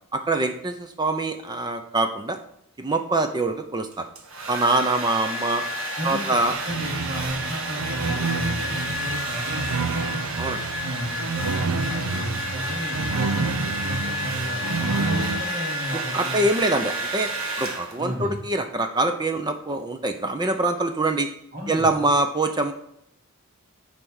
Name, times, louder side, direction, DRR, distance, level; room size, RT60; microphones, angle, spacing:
voice 1, 0.1-2.4 2.8-4.0 4.5-5.6 6.0-6.6 10.4-10.6 16.1-17.3 17.6-21.3 21.7-22.7, right 2 dB, 20° right, 6 dB, 0.6 m, -24 dB
Domestic sounds home sounds, 3.9-18.2, right 1 dB, 65° right, 1.4 m, -30 dB
voice 2, 6.0-10.2 10.8-16.4 18.0-18.4 21.5-21.9, equal, 40° right, -3 dB, 2.3 m, -33 dB
sound 1, 6.7-15.4, right 4 dB, 85° right, 0.6 m, -29 dB
9.1 x 3.4 x 6.3 m, 0.75 s
head